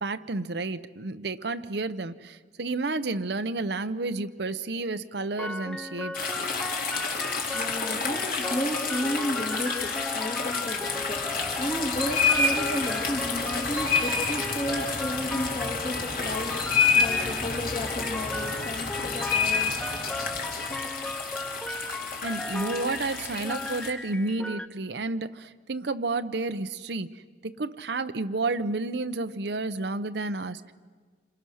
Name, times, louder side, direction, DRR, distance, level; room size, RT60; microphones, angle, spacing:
voice 1, 0.0-6.3 22.2-27.1 27.4-30.7, right 3 dB, 65° right, 10 dB, 0.8 m, -31 dB
sound 1, 5.4-24.7, left 2 dB, 5° left, 0.7 m, -37 dB
sound 2, 6.1-23.9, left 5 dB, 50° left, 2.9 m, -29 dB
voice 2, 6.9-19.7, equal, 35° left, -1 dB, 2.3 m, -33 dB
28.0 x 27.0 x 6.4 m, 1.5 s
head